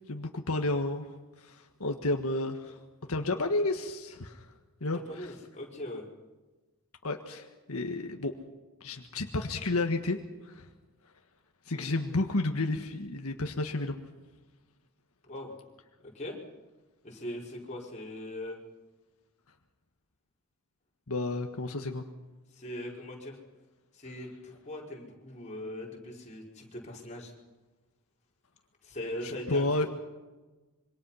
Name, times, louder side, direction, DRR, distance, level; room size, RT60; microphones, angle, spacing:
voice 1, 0.1-1.0 1.4-2.8 3.1-4.5 4.8-5.3 7.0-8.3 8.8-10.7 11.6-14.0 21.1-22.0 29.2-29.9, left 2 dB, 80° left, 4 dB, 1.6 m, -31 dB
voice 2, 4.9-6.1 11.7-11.9 15.2-15.6 16.0-16.4 17.0-18.6 22.5-23.4 23.9-27.3 28.8-29.9, left 1 dB, 30° left, -2 dB, 5.0 m, -40 dB
26.5 x 24.5 x 5.8 m, 1.2 s
head